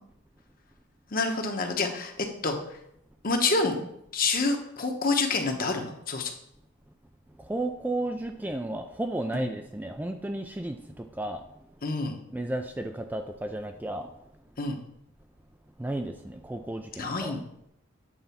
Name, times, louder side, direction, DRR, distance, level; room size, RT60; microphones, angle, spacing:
voice 1, 1.1-2.1 2.4-2.6 3.2-3.8 4.1-6.3 9.3-9.4 11.8-12.2 14.6-14.8 17.0-17.4, left 3 dB, 45° left, 4 dB, 1.1 m, -27 dB
voice 2, 7.4-11.4 12.3-14.1 15.8-17.4, right 1 dB, 10° right, 5 dB, 0.3 m, -33 dB
8.8 x 4.0 x 5.8 m, 0.77 s
head